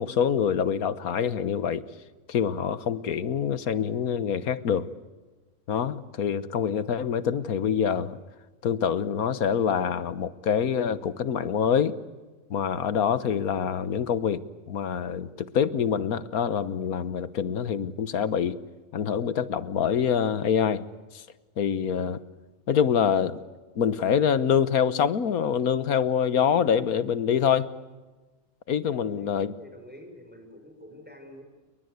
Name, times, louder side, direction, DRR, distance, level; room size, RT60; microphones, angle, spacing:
voice 1, 0.0-1.8 2.3-4.9 5.7-8.2 8.6-11.9 12.5-18.6 18.9-20.8 21.1-21.2 21.6-22.2 22.7-23.4 23.7-27.7 28.7-29.5, left 7 dB, 80° left, 15 dB, 1.6 m, -25 dB
voice 2, 28.8-31.4, equal, 5° right, 3 dB, 6.2 m, -48 dB
29.5 x 23.5 x 8.2 m, 1.2 s
omnidirectional pair, 1.5 m